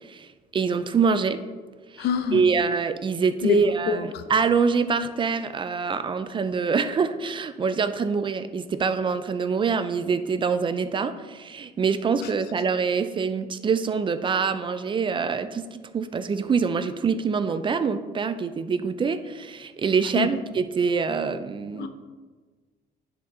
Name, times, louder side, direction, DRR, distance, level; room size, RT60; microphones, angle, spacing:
voice 1, 0.0-1.4 1.9-21.9, right 5 dB, 30° right, 11 dB, 0.4 m, -25 dB
voice 2, 2.0-2.4 3.4-3.6 3.9-4.0 20.2-20.3 21.8-21.9, left 7 dB, 75° left, 8 dB, 0.7 m, -24 dB
10.5 x 4.4 x 3.6 m, 1.4 s
cardioid pair, 110°, 17 cm